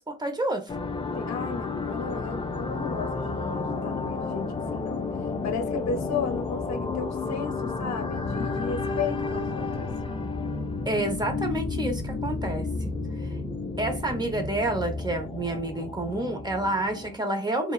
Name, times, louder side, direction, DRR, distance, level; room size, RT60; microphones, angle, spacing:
voice 1, 0.1-0.7 10.9-12.9 13.8-17.7, right 1 dB, 15° right, 0.7 m, -29 dB
sound 1, 0.7-17.2, left 3 dB, 20° left, 0.4 m, -31 dB
voice 2, 1.2-5.0 5.4-9.9, left 5 dB, 65° left, 0.7 m, -34 dB
2.8 x 2.1 x 2.3 m
cardioid pair, 90°, 30 cm